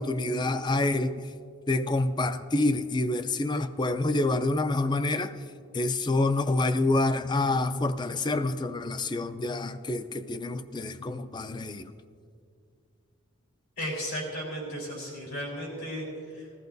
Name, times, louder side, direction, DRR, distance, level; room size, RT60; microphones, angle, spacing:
voice 1, 0.0-1.3 1.7-5.5 5.7-11.9, left 2 dB, 20° left, 11 dB, 0.4 m, -27 dB
voice 2, 13.8-16.6, equal, 75° left, -2 dB, 3.9 m, -35 dB
19.5 x 14.0 x 2.6 m, 2.3 s
head